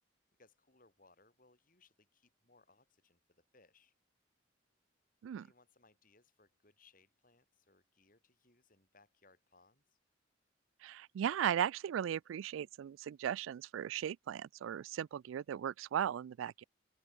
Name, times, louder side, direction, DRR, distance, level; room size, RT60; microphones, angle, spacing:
voice 1, 0.4-3.9 5.4-10.0, left 3 dB, 45° left, 7.7 m, -68 dB
voice 2, 10.8-16.6, right 9 dB, 90° right, 0.3 m, -37 dB
open air
head